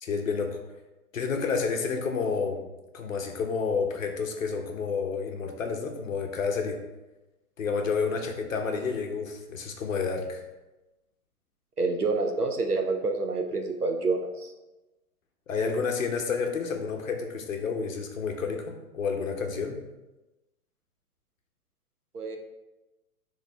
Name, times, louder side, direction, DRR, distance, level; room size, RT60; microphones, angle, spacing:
voice 1, 0.0-0.6 1.1-2.6 2.9-6.8 7.6-10.4 15.5-19.8, left 5 dB, 60° left, 4 dB, 1.2 m, -30 dB
voice 2, 11.8-14.5 22.1-22.4, right 3 dB, 90° right, 4 dB, 1.1 m, -28 dB
10.0 x 3.6 x 3.3 m, 1.0 s
figure-of-eight pair, 115°, 44 cm